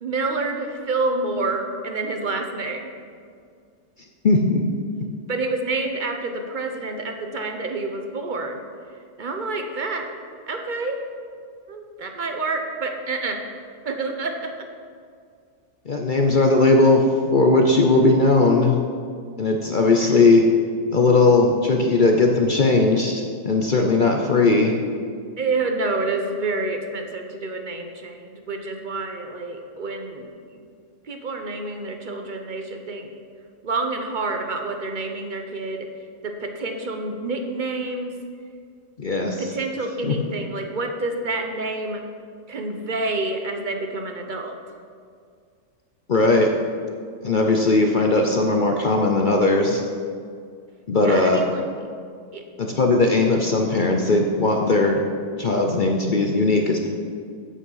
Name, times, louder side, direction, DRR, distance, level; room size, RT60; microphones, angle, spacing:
voice 1, 0.0-2.9 5.3-8.6 9.2-10.1 10.5-11.0 11.7-13.4 13.8-14.5 20.0-20.2 25.4-30.6 31.1-33.1 33.6-35.9 36.2-38.1 39.4-42.0 42.5-44.5 51.0-51.6 52.3-52.4, right 3 dB, 45° right, 4 dB, 0.7 m, -28 dB
voice 2, 4.2-4.6 15.9-17.0 17.3-18.8 19.4-20.4 20.9-24.7 39.0-39.4 40.0-40.1 46.1-46.5 47.2-49.8 50.9-51.4 52.6-55.0 55.4-56.9, left 3 dB, 60° left, 2 dB, 0.5 m, -18 dB
8.6 x 8.3 x 5.6 m, 2.2 s
omnidirectional pair, 1.8 m